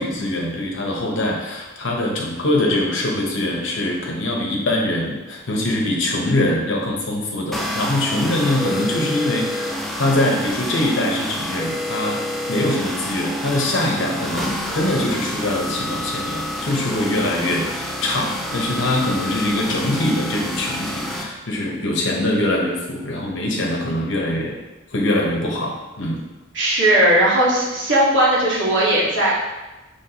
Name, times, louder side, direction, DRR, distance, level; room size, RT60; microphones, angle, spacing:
voice 1, 0.0-12.2 12.5-24.6 24.9-26.2, left 1 dB, 70° left, -1 dB, 0.9 m, -23 dB
sound 1, 7.5-21.2, equal, ahead, 0.4 m, -28 dB
voice 2, 26.5-29.3, right 1 dB, 65° right, -6 dB, 1.4 m, -17 dB
5.8 x 3.0 x 2.9 m, 1.1 s
head